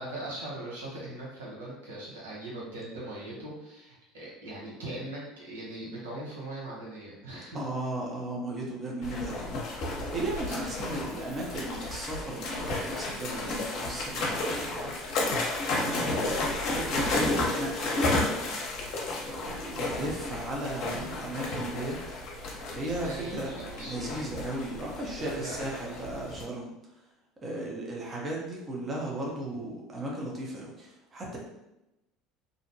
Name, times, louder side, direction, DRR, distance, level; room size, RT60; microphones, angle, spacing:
voice 1, 0.0-7.6 9.9-10.5 22.8-24.2 25.2-25.7, right 1 dB, 85° right, -6 dB, 0.8 m, -40 dB
voice 2, 7.5-15.0 15.7-18.6 19.3-22.2 22.7-23.6 23.8-26.7 27.4-31.4, right 1 dB, 30° right, -3 dB, 0.7 m, -36 dB
sound 1, 9.0-26.4, left 2 dB, 60° left, 0.7 m, -32 dB
2.6 x 2.1 x 2.6 m, 0.92 s
hypercardioid pair, 70°, 0 cm